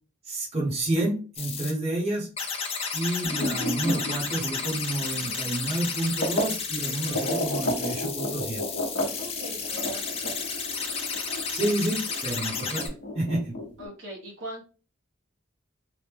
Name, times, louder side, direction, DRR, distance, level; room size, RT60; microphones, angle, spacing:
voice 1, 0.2-2.3 2.9-8.6 11.5-12.9 13.1-13.6, right 1 dB, 30° right, -4 dB, 0.8 m, -29 dB
sound 1, 1.3-1.7 2.4-12.9, left 5 dB, 30° left, 0.6 m, -32 dB
sound 2, 3.2-6.5 7.1-13.9, left 1 dB, 60° left, 0.8 m, -33 dB
voice 2, 6.8-7.1 9.1-10.6 13.8-14.6, equal, 80° right, -2 dB, 1.2 m, -42 dB
3.1 x 2.1 x 3.4 m, 0.36 s
head